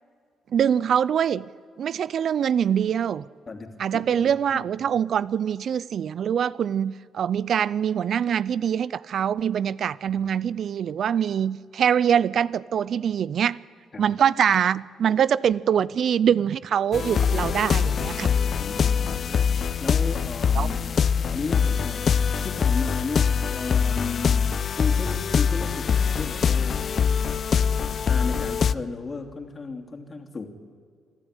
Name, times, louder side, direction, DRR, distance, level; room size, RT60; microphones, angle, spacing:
voice 1, 0.5-1.5 1.8-3.3 3.8-13.6 14.0-18.3 20.5-20.7, right 8 dB, 60° right, 0.5 m, -24 dB
voice 2, 3.5-5.0 13.9-14.1 18.6-27.0 27.9-30.5, left 3 dB, 35° left, 2.9 m, -35 dB
sound 1, 16.9-28.7, left 7 dB, 50° left, 0.6 m, -23 dB
27.0 x 12.5 x 9.9 m
cardioid pair, 90°, 0 cm